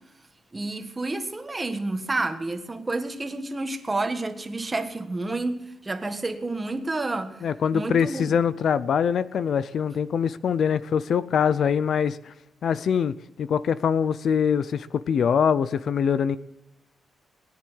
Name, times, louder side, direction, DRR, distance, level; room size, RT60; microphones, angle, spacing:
voice 1, 0.5-7.4 7.7-8.4, right 2 dB, 20° right, 1.5 m, -30 dB
voice 2, 7.4-12.3 12.6-16.4, left 7 dB, 55° left, 0.5 m, -23 dB
19.5 x 10.5 x 6.3 m
wide cardioid pair, 145°, 0 cm